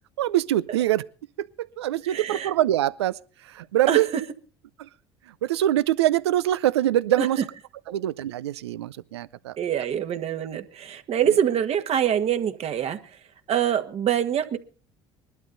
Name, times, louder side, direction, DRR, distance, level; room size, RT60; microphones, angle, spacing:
voice 1, 0.2-1.0 1.4-3.2 3.5-4.1 4.8-4.9 5.4-7.4 7.9-9.6, right 13 dB, 85° right, 0.6 m, -24 dB
voice 2, 2.0-2.5 3.9-4.2 7.2-7.3 7.9-8.0 9.6-13.2 13.5-14.6, right 9 dB, 50° right, 1.6 m, -25 dB
20.5 x 12.0 x 3.9 m
hypercardioid pair, 65°, 14 cm